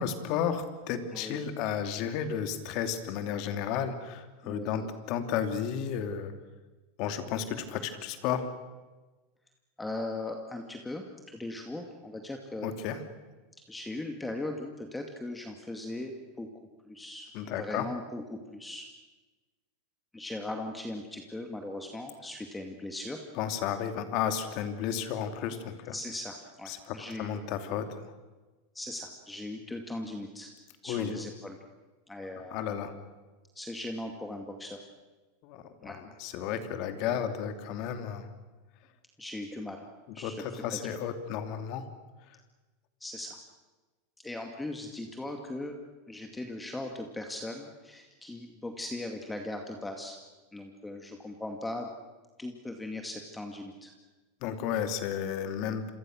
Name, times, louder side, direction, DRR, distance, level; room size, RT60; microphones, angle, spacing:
voice 1, 0.0-6.3 7.0-8.5 12.6-13.0 17.3-17.9 23.4-26.0 26.7-28.1 30.9-31.1 32.5-32.9 35.4-38.3 40.2-41.8 54.4-55.9, left 8 dB, 55° left, 7 dB, 2.8 m, -33 dB
voice 2, 1.1-1.5 4.4-4.9 9.8-12.8 13.7-16.5 16.8-18.9 20.1-23.2 25.9-27.5 28.7-30.5 30.8-31.6 32.1-32.6 33.5-34.8 35.8-36.0 39.2-39.9 40.1-40.4 40.7-40.8 43.0-43.4 44.2-45.8 46.1-50.2 50.5-51.9 52.4-53.9, left 2 dB, 10° left, 4 dB, 2.3 m, -39 dB
28.0 x 23.5 x 6.5 m, 1.2 s
hypercardioid pair, 115°, 0 cm